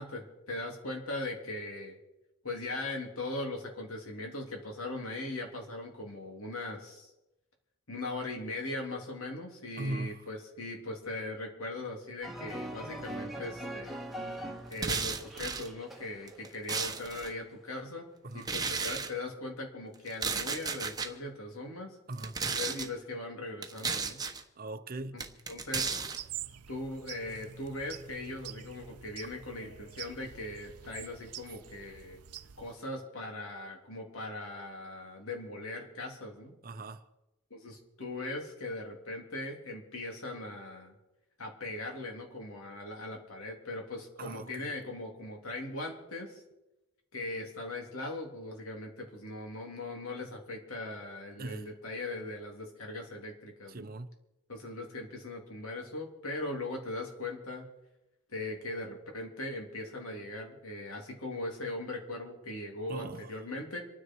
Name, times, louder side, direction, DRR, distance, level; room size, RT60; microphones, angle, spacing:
voice 1, 0.0-2.0 2.4-7.1 7.9-14.0 14.7-18.1 18.3-22.0 22.5-24.2 25.1-25.2 25.5-26.0 26.7-32.2 32.6-36.5 37.5-40.9 41.4-46.4 47.1-53.9 54.5-57.6 58.3-63.8, left 2 dB, 65° left, 3.2 m, -39 dB
voice 2, 9.8-10.3 18.2-18.5 22.1-22.4 24.6-25.2 29.2-29.4 36.6-37.0 44.2-44.7 51.4-51.7 53.7-54.1 62.9-63.4, right 2 dB, 40° right, 0.7 m, -40 dB
sound 1, 12.2-16.6 16.9-17.3, right 1 dB, ahead, 1.6 m, -42 dB
sound 2, 14.7-15.7 16.3-17.3 18.4-19.1 20.1-21.1 22.1-22.9 23.6-24.4 25.2-26.2, right 5 dB, 15° right, 1.1 m, -34 dB
sound 3, 26.1-32.7, right 10 dB, 90° right, 0.7 m, -46 dB
27.0 x 9.9 x 4.7 m
head